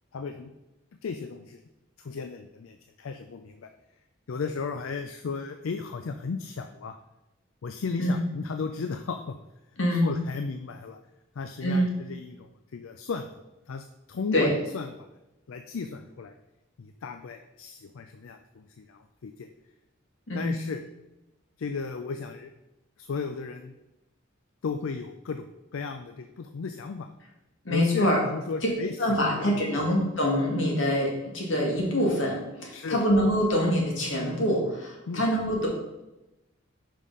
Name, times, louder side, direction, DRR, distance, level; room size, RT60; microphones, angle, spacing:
voice 1, 0.1-0.5 1.0-1.6 2.0-3.7 4.3-6.9 7.6-9.4 10.0-11.0 11.4-13.3 13.7-15.1 15.5-16.4 16.8-19.5 20.3-20.8 21.6-22.5 23.0-23.7 24.6-25.5 25.7-27.1 27.7-29.0 29.2-29.6 32.7-33.0 35.1-35.2, left 5 dB, 85° left, 7 dB, 0.4 m, -35 dB
voice 2, 11.6-11.9 14.3-14.5 20.3-20.5 27.6-28.2 29.0-35.7, equal, 70° left, -2 dB, 2.1 m, -25 dB
5.6 x 5.1 x 5.5 m, 0.97 s
head